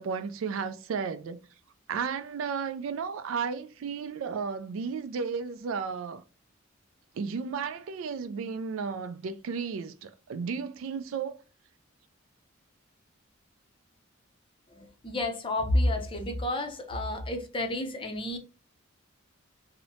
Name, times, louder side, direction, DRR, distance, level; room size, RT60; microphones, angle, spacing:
voice 1, 0.0-1.4 1.9-6.2 7.1-11.4, right 5 dB, 75° right, 0.3 m, -33 dB
voice 2, 14.7-18.4, left 1 dB, 25° left, 0.5 m, -30 dB
2.8 x 2.1 x 2.6 m
head